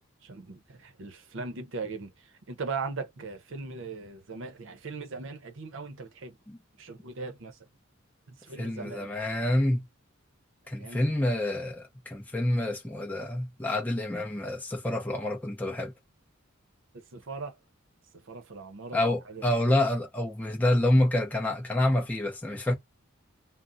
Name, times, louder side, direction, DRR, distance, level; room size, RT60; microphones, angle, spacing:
voice 1, 0.2-2.1 2.5-6.4 6.8-7.6 8.3-9.1 10.8-11.1 16.9-17.6 18.3-19.4, right 4 dB, 65° right, 0.6 m, -39 dB
voice 2, 8.6-9.9 10.7-15.9 18.9-22.8, left 1 dB, 10° left, 0.6 m, -27 dB
2.4 x 2.0 x 3.8 m
head